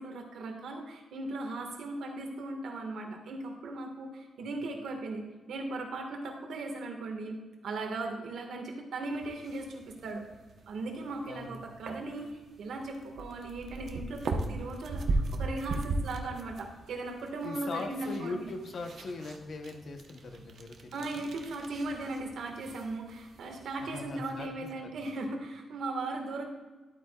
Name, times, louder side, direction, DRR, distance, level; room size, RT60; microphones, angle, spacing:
voice 1, 0.0-10.2 10.7-18.5 20.9-26.4, right 2 dB, 70° right, 3 dB, 1.5 m, -38 dB
sound 1, 9.1-24.4, right 2 dB, 55° right, 0.8 m, -39 dB
voice 2, 11.3-11.6 17.4-21.2 23.8-24.5 24.8-24.9, left 3 dB, 45° left, 5 dB, 0.8 m, -40 dB
12.0 x 8.4 x 2.3 m, 1.2 s
wide cardioid pair, 170°, 0 cm